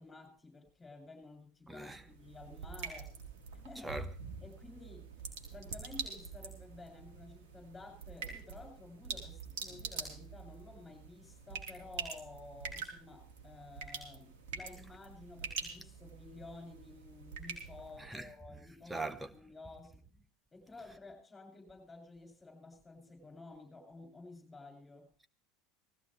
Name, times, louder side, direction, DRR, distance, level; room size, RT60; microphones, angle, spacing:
voice 1, 0.0-3.1 3.6-4.0 4.4-5.1 5.5-19.0 19.3-20.0 20.5-25.1, left 3 dB, 20° left, 7.4 m, -52 dB
voice 2, 1.7-2.0 3.8-4.0 18.1-18.3 18.9-19.3, right 2 dB, 10° right, 1.3 m, -40 dB
sound 1, 1.8-18.3, right 5 dB, 70° right, 3.7 m, -45 dB
19.5 x 15.0 x 3.3 m
hypercardioid pair, 75°, 0 cm